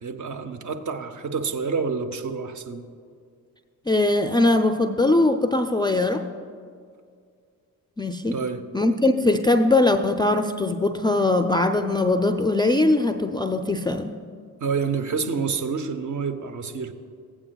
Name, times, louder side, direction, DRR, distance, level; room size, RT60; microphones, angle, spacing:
voice 1, 0.0-2.9 8.3-8.6 14.6-16.9, right 5 dB, 45° right, 7 dB, 0.8 m, -28 dB
voice 2, 3.9-6.2 8.0-8.3 8.7-14.1, left 2 dB, 10° left, 7 dB, 0.4 m, -21 dB
15.0 x 8.7 x 2.3 m, 2.2 s
hypercardioid pair, 40°, 41 cm